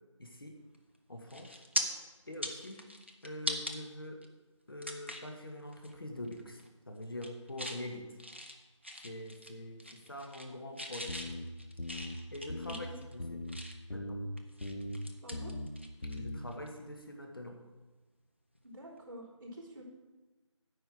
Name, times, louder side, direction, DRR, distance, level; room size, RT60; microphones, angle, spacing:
voice 1, 0.2-0.6 1.1-1.6 2.3-2.8 3.2-4.2 4.7-8.2 9.0-11.2 12.3-12.9 13.1-13.4 13.9-14.2 16.1-17.6, left 1 dB, 45° left, 3 dB, 1.2 m, -44 dB
sound 1, 0.7-1.0 1.3-1.8 2.3-3.8 4.2-4.3 4.8-5.3 5.7-5.9 6.2-6.7 7.0-7.8 8.2-9.5 9.8-10.5 10.8-13.9 14.4-16.2 16.5-16.7 18.6-18.7, equal, 20° right, 0.5 m, -40 dB
sound 2, 11.1-11.4 11.8-12.1 12.5-12.8 13.2-13.6 13.9-14.3 14.6-15.0 15.3-15.7 16.0-16.4, left 1 dB, 85° left, 1.4 m, -39 dB
voice 2, 15.2-15.6 18.6-19.8, equal, 45° right, -7 dB, 3.7 m, -48 dB
9.7 x 5.0 x 7.7 m, 1.2 s
figure-of-eight pair, 175°, 17 cm